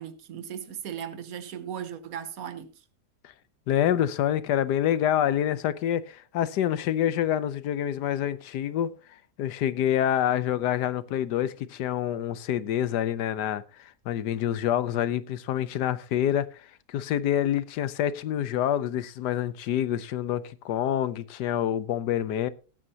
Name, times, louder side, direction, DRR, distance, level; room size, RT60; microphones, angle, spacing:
voice 1, 0.0-2.7, right 9 dB, 60° right, 1.4 m, -37 dB
voice 2, 3.7-8.9 9.4-16.6 16.9-22.5, left 10 dB, 85° left, 1.3 m, -27 dB
18.5 x 8.8 x 2.8 m
omnidirectional pair, 1.8 m